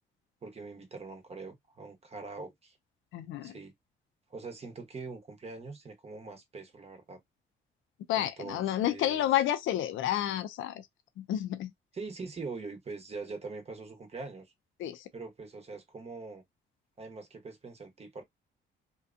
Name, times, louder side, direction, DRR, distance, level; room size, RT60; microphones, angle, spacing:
voice 1, 0.4-2.8 3.4-3.7 4.3-7.2 8.2-9.3 11.9-14.5 15.1-16.4 17.0-18.2, right 4 dB, 30° right, 1.0 m, -43 dB
voice 2, 3.1-3.5 8.1-10.8 11.2-11.7 14.8-15.0, left 12 dB, 75° left, 0.5 m, -30 dB
2.7 x 2.2 x 2.5 m
cardioid pair, 90°, 20 cm